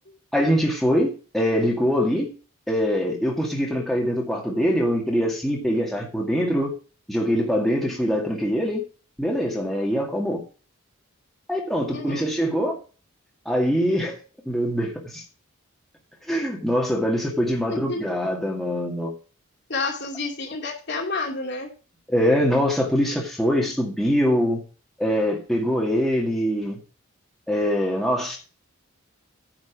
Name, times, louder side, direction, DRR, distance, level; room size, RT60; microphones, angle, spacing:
voice 1, 0.3-2.3 2.7-6.7 7.1-8.8 9.2-10.4 11.5-12.8 13.5-14.2 14.5-15.2 16.3-19.1 22.1-24.6 25.0-26.8 27.5-28.4, equal, ahead, -1 dB, 2.0 m, -23 dB
voice 2, 11.9-12.3 17.7-18.0 19.7-21.7, left 3 dB, 50° left, 2 dB, 2.4 m, -29 dB
9.9 x 6.2 x 6.0 m, 0.35 s
head